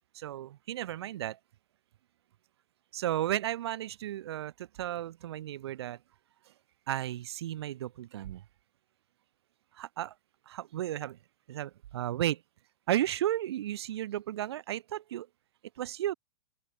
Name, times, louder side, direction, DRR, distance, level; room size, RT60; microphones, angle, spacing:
voice 1, 0.1-1.4 2.9-6.0 6.9-8.4 9.7-10.1 10.5-11.2 11.5-12.4 12.9-15.3 15.8-16.1, right 13 dB, 70° right, 5.3 m, -34 dB
open air
hypercardioid pair, 130°, 14 cm